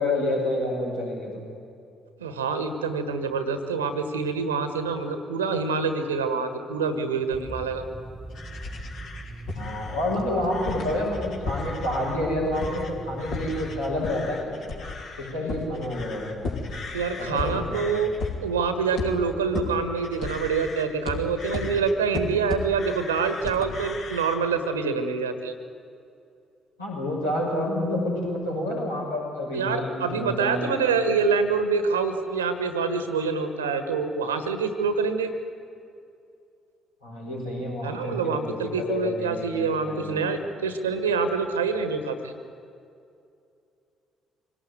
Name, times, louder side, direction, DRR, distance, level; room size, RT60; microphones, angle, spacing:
voice 1, 0.0-1.4 9.5-14.6 15.2-16.5 17.2-18.0 26.8-30.7 37.0-40.2, left 1 dB, 85° left, -6 dB, 6.3 m, -29 dB
voice 2, 2.2-7.9 16.9-18.1 18.4-25.5 29.5-35.3 37.8-42.3, right 5 dB, 80° right, 9 dB, 1.5 m, -26 dB
sound 1, 7.3-14.0, right 2 dB, 10° right, 1.4 m, -40 dB
sound 2, 8.3-12.2 12.5-12.9 13.2-24.4, left 3 dB, 60° left, 3.3 m, -35 dB
25.0 x 18.0 x 9.4 m, 2.5 s
figure-of-eight pair, 45°, 0 cm